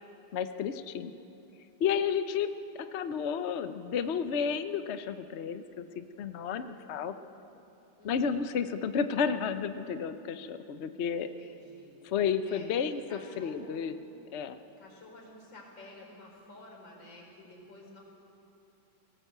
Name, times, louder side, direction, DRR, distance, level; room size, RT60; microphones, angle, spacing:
voice 1, 0.3-1.1 1.8-2.5 2.9-7.1 8.0-11.3 12.0-13.9 14.3-14.6, left 7 dB, 55° left, 10 dB, 0.7 m, -32 dB
voice 2, 8.0-8.5 11.2-11.9 12.4-12.7 13.1-13.9 14.8-18.0, left 2 dB, 75° left, -1 dB, 5.4 m, -51 dB
19.5 x 17.5 x 7.9 m, 3.0 s
omnidirectional pair, 2.0 m